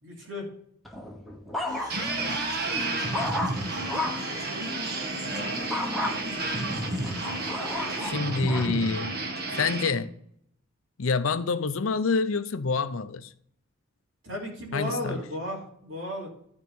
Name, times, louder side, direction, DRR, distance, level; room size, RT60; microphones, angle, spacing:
voice 1, 0.0-0.5 14.2-16.3, left 1 dB, 70° right, 3.2 m, -34 dB
sound 1, 0.8-2.2 2.7-4.3 5.7-6.1 6.8-8.7 9.4-9.7, left 1 dB, ahead, 1.2 m, -33 dB
sound 2, 1.7-8.1, left 1 dB, 20° right, 1.7 m, -40 dB
sound 3, 1.9-9.9, right 2 dB, 50° right, 1.5 m, -31 dB
voice 2, 8.0-9.1 9.6-10.1 11.0-13.3 14.7-15.2, left 4 dB, 85° left, 0.7 m, -27 dB
12.0 x 4.7 x 5.6 m
head